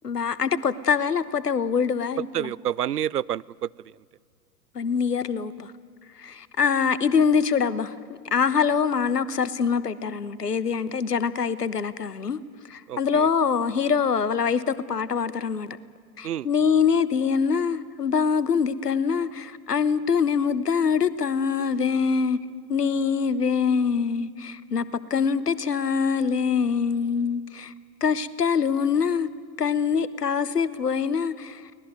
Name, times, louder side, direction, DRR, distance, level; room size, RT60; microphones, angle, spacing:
voice 1, 0.0-2.5 4.7-5.7 6.2-12.4 12.7-15.7 16.2-22.4 22.7-27.7 28.0-29.3 29.6-31.6, left 6 dB, 75° left, 17 dB, 1.2 m, -24 dB
voice 2, 2.3-3.7 12.9-13.3 16.2-16.5, right 10 dB, 70° right, 22 dB, 0.6 m, -28 dB
24.0 x 19.0 x 9.3 m, 2.1 s
figure-of-eight pair, 100°, 48 cm